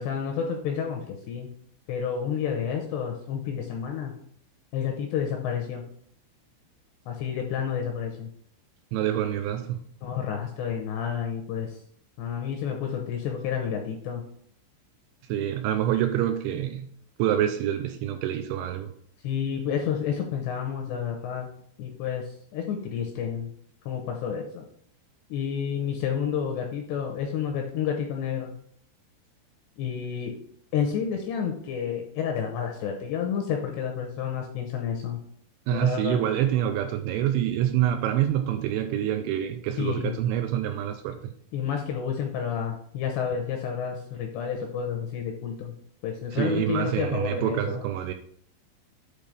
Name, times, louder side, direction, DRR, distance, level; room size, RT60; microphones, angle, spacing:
voice 1, 0.0-1.5 1.9-4.2 4.7-5.8 7.1-8.3 10.0-11.8 12.2-14.2 19.2-21.5 21.8-23.5 23.9-24.6 25.3-28.6 29.8-30.4 30.7-35.2 35.7-36.2 39.8-40.2 41.5-45.7 46.0-47.9, left 7 dB, 80° left, 2.6 m, -30 dB
voice 2, 8.9-9.8 15.3-16.9 17.2-18.9 35.7-41.3 46.3-48.1, right 11 dB, 80° right, 2.8 m, -26 dB
8.4 x 3.6 x 4.9 m
omnidirectional pair, 5.5 m